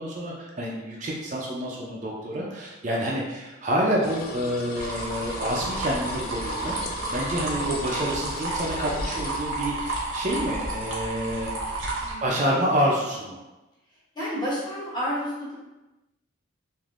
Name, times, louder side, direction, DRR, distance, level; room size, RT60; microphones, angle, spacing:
voice 1, 0.0-6.8 7.1-11.6 12.2-13.4, equal, 35° right, -3 dB, 0.4 m, -28 dB
sound 1, 4.0-9.4, left 2 dB, 45° left, 0.3 m, -38 dB
sound 2, 4.8-12.1, right 2 dB, 80° right, 0.8 m, -31 dB
voice 2, 14.1-15.5, equal, 20° left, -7 dB, 0.8 m, -30 dB
3.3 x 2.5 x 2.4 m, 1.1 s
head